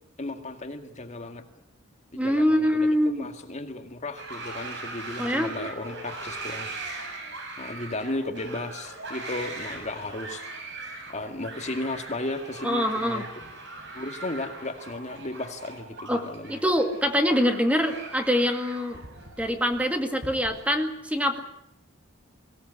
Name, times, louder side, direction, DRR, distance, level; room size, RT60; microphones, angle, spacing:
voice 1, 0.2-1.4 2.1-6.7 7.6-10.4 11.1-13.3 13.9-16.6, left 2 dB, 35° left, 6 dB, 2.1 m, -35 dB
voice 2, 2.1-3.3 5.2-5.5 12.6-13.3 16.1-19.0 19.4-21.4, equal, 5° right, 6 dB, 2.1 m, -24 dB
sound 1, 4.2-20.7, right 2 dB, 60° right, 6.9 m, -40 dB
23.5 x 17.5 x 9.8 m, 0.77 s
head